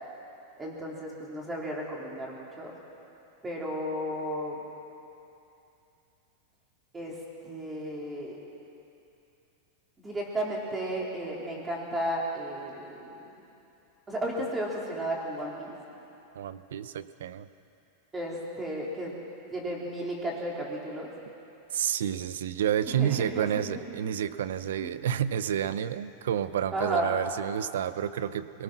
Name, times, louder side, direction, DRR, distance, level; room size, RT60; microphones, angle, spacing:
voice 1, 0.6-2.7 3.4-4.6 6.9-7.1 7.4-8.4 10.0-13.2 14.1-15.7 18.1-19.1 19.5-21.1 22.9-23.7 24.8-24.9 26.7-27.1, right 1 dB, 15° right, -3 dB, 3.3 m, -33 dB
voice 2, 16.3-17.5 21.7-28.6, right 9 dB, 90° right, 14 dB, 0.7 m, -30 dB
23.5 x 19.0 x 6.1 m, 2.8 s
supercardioid pair, 160°, 0 cm